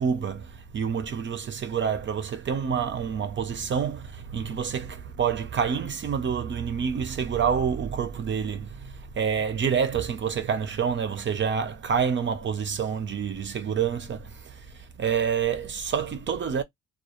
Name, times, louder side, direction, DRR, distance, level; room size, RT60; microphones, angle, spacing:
voice 1, 0.0-16.6, right 7 dB, 40° right, 0.5 m, -28 dB
2.3 x 2.2 x 2.9 m
cardioid pair, 90°, 30 cm